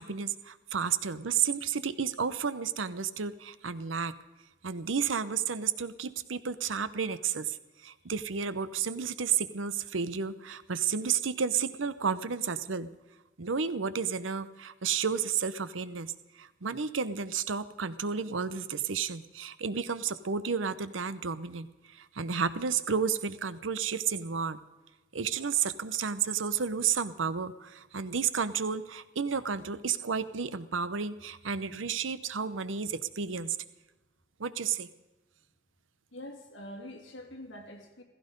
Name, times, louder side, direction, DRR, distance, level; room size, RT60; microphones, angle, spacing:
voice 1, 0.0-4.1 4.6-7.6 7.8-12.9 13.4-16.1 16.4-21.7 21.9-24.6 25.1-33.6 34.4-34.9, right 6 dB, 85° right, 14 dB, 0.8 m, -32 dB
voice 2, 36.1-38.0, left 1 dB, 80° left, 2 dB, 3.0 m, -45 dB
16.0 x 15.5 x 5.3 m, 1.1 s
head